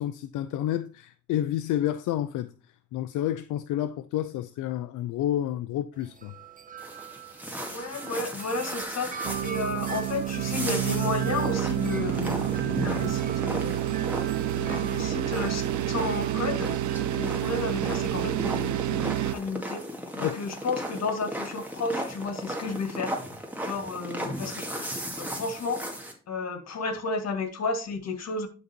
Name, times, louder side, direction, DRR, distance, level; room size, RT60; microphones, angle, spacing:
voice 1, 0.0-2.5 2.9-6.3 20.2-20.4, left 12 dB, 80° left, 0.5 m, -29 dB
Wind chime, 5.9-19.3, right 6 dB, 25° right, 0.8 m, -43 dB
sound 1, 6.8-26.1, equal, 5° right, 2.2 m, -36 dB
voice 2, 7.7-13.8 14.5-16.7 17.1-19.8 20.2-23.2 23.6-24.7 25.2-26.0 26.3-28.5, left 3 dB, 60° left, 2.0 m, -32 dB
sound 2, 9.2-19.3, right 13 dB, 70° right, 0.6 m, -29 dB
11.5 x 4.1 x 4.4 m
cardioid pair, 90°, 30 cm